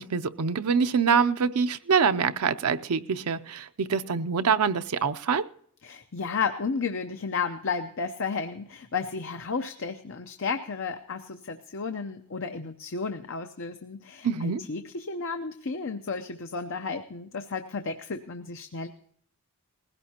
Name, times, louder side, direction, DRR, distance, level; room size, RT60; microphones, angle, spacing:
voice 1, 0.0-5.4 14.2-14.6, right 6 dB, 80° right, 10 dB, 0.6 m, -25 dB
voice 2, 5.8-18.9, left 5 dB, 60° left, 7 dB, 0.7 m, -33 dB
19.5 x 16.5 x 2.9 m, 0.62 s
head